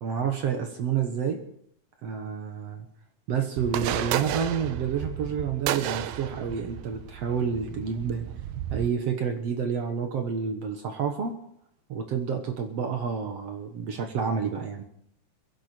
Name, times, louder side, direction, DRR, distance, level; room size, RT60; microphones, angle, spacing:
voice 1, 0.0-1.4 2.0-2.9 3.3-8.3 8.7-11.4 11.9-14.8, right 7 dB, 60° right, 5 dB, 2.0 m, -29 dB
sound 1, 3.6-8.9, right 12 dB, 85° right, 2.5 m, -32 dB
23.5 x 10.5 x 4.5 m, 0.69 s
omnidirectional pair, 4.0 m